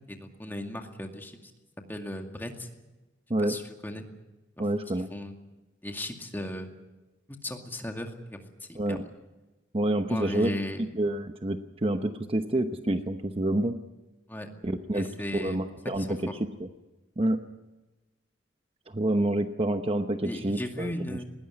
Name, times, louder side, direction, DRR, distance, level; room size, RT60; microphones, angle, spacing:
voice 1, 0.1-1.4 1.9-2.7 3.4-4.1 4.9-5.4 5.8-6.7 7.3-9.1 10.1-10.9 14.3-14.5 14.9-15.6 16.0-16.1 20.2-21.2, left 1 dB, 10° left, 3 dB, 2.2 m, -36 dB
voice 2, 4.6-5.1 8.7-9.0 9.7-10.5 11.0-13.8 14.6-15.1 15.3-16.7 17.2-17.4 18.9-21.2, right 1 dB, 30° right, 8 dB, 0.9 m, -28 dB
20.0 x 18.0 x 9.8 m, 1.1 s
head